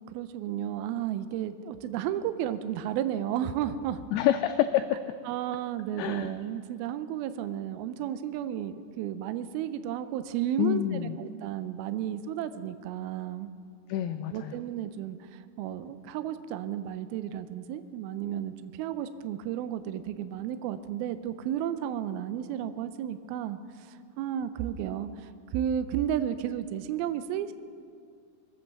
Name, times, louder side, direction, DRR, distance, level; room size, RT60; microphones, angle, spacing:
voice 1, 0.1-4.0 5.3-13.5 14.3-27.5, right 10 dB, 85° right, 11 dB, 2.1 m, -33 dB
voice 2, 4.1-4.8 6.0-6.3 10.6-11.2 13.9-14.5, left 12 dB, 85° left, 8 dB, 2.2 m, -27 dB
22.0 x 8.5 x 7.3 m, 2.2 s
omnidirectional pair, 5.0 m